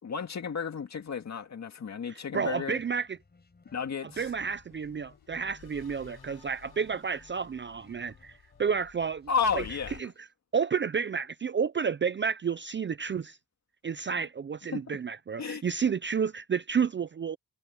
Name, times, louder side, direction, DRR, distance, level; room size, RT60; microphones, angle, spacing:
voice 1, 0.0-2.8 3.7-4.3 9.3-10.0 14.7-14.8 15.4-15.6, left 6 dB, 45° left, 2.2 m, -32 dB
voice 2, 2.1-3.2 4.2-8.3 8.6-9.3 10.0-10.1 10.5-13.4 13.8-17.4, right 6 dB, 30° right, 0.5 m, -30 dB
sound 1, 2.6-10.3, left 3 dB, 25° left, 5.9 m, -60 dB
sound 2, 4.1-10.0, left 8 dB, 65° left, 4.6 m, -53 dB
cardioid pair, 130°, 39 cm